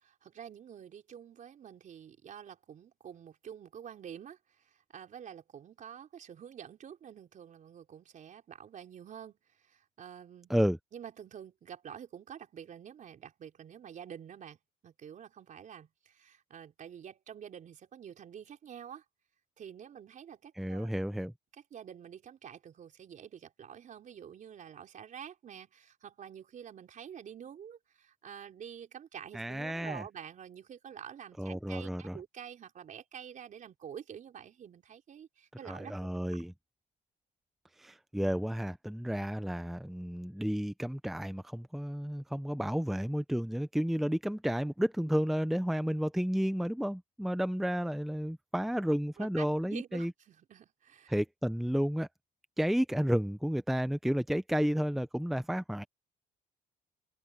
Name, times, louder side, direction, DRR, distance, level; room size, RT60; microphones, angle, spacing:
voice 1, 0.0-10.5 10.9-14.6 14.8-19.0 19.6-20.9 21.7-36.1 49.2-51.1, right 8 dB, 50° right, 4.2 m, -48 dB
voice 2, 20.6-21.3 29.3-30.0 31.4-32.2 35.6-36.5 37.8-50.1 51.1-52.1 52.6-55.8, equal, ahead, 0.7 m, -32 dB
cardioid pair, 110°, 17 cm